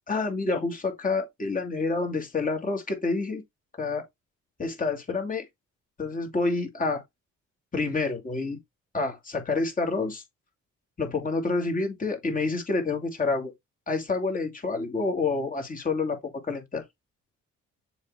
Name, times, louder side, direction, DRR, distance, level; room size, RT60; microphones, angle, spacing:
voice 1, 0.1-3.4 3.8-4.0 4.6-5.4 6.0-7.0 7.7-8.6 8.9-10.2 11.0-13.5 13.9-16.2 16.4-16.8, left 3 dB, 25° left, 2.6 m, -28 dB
7.2 x 3.0 x 4.7 m
cardioid pair, 90°, 30 cm